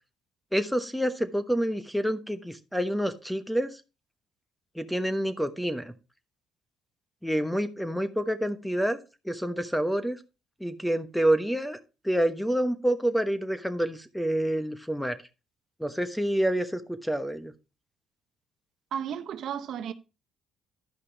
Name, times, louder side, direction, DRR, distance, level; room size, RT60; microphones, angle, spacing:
voice 1, 0.5-3.8 4.7-5.9 7.2-9.0 9.2-10.2 10.6-11.8 12.0-15.2 15.8-17.5, right 1 dB, ahead, 1.1 m, -28 dB
voice 2, 18.9-19.9, right 8 dB, 65° right, 0.7 m, -33 dB
11.5 x 5.4 x 4.0 m
cardioid pair, 90°, 0 cm